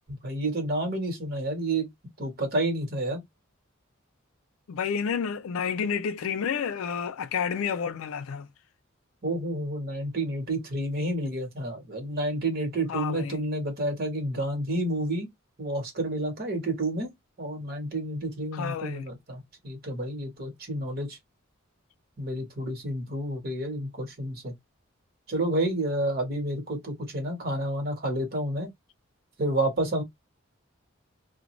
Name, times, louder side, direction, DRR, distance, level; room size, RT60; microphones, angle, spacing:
voice 1, 0.1-1.9 2.2-3.2 9.2-15.3 15.6-17.1 17.4-21.2 22.2-24.5 25.3-28.7 29.4-30.0, right 1 dB, 45° right, 1.2 m, -30 dB
voice 2, 4.7-8.5 12.9-13.4 18.5-19.1, left 7 dB, 90° left, 0.4 m, -30 dB
2.5 x 2.2 x 3.0 m
head